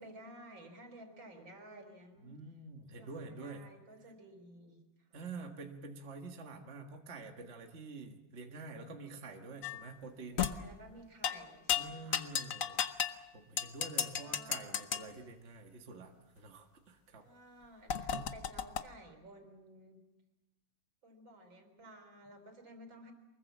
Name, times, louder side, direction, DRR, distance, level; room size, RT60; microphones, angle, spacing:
voice 1, 0.0-2.3 3.0-5.2 10.2-12.2 14.0-14.8 17.2-20.0 21.0-23.1, right 1 dB, 80° right, 5 dB, 4.5 m, -54 dB
voice 2, 2.2-3.6 5.1-10.4 11.8-17.2 18.1-18.3, right 3 dB, 35° right, 3 dB, 1.8 m, -48 dB
sound 1, 9.6-9.9 10.4-10.6 11.2-11.4 11.7-13.2 13.6-15.0 17.9-18.8, left 8 dB, 50° left, 1.2 m, -33 dB
24.0 x 21.5 x 7.3 m, 1.1 s
omnidirectional pair, 2.1 m